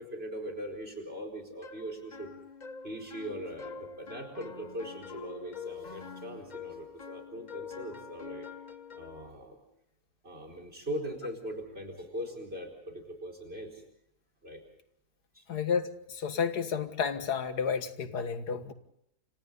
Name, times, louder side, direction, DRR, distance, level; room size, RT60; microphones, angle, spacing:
voice 1, 0.0-2.3 2.8-8.5 8.9-9.6 10.2-13.8 14.4-14.6 15.3-15.5, equal, 40° right, 5 dB, 4.7 m, -40 dB
sound 1, 1.6-9.3, left 5 dB, 35° left, 0.9 m, -45 dB
voice 2, 15.5-18.7, left 6 dB, 85° left, 9 dB, 2.1 m, -31 dB
29.5 x 26.0 x 4.0 m, 0.74 s
omnidirectional pair, 1.7 m